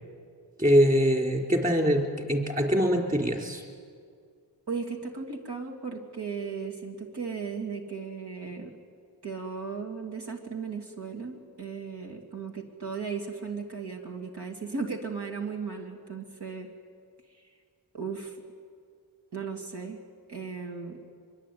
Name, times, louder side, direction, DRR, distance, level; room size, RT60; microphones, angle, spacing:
voice 1, 0.6-3.6, equal, 20° right, 2 dB, 4.2 m, -23 dB
voice 2, 4.7-8.7 9.2-16.7 17.3-17.5 17.9-18.4 19.3-20.0 20.3-21.0, right 5 dB, 70° right, 1 dB, 2.9 m, -36 dB
24.5 x 23.0 x 9.5 m, 2.1 s
wide cardioid pair, 70°, 42 cm